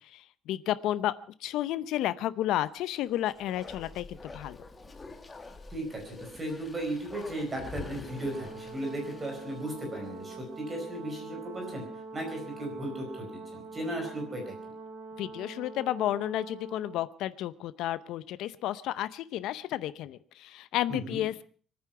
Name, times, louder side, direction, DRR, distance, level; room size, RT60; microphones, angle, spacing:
voice 1, 0.1-1.1 1.4-4.6 15.2-21.4, left 13 dB, 70° left, 15 dB, 0.7 m, -32 dB
Bark, 2.9-10.4 10.8-10.9, left 3 dB, 15° left, 1.5 m, -47 dB
voice 2, 5.7-11.9 12.1-14.5 20.9-21.2, right 1 dB, 20° right, 2 dB, 4.7 m, -36 dB
Brass instrument, 8.0-17.0, right 3 dB, 75° right, 3.6 m, -44 dB
25.0 x 9.7 x 5.8 m, 0.43 s
cardioid pair, 170°, 0 cm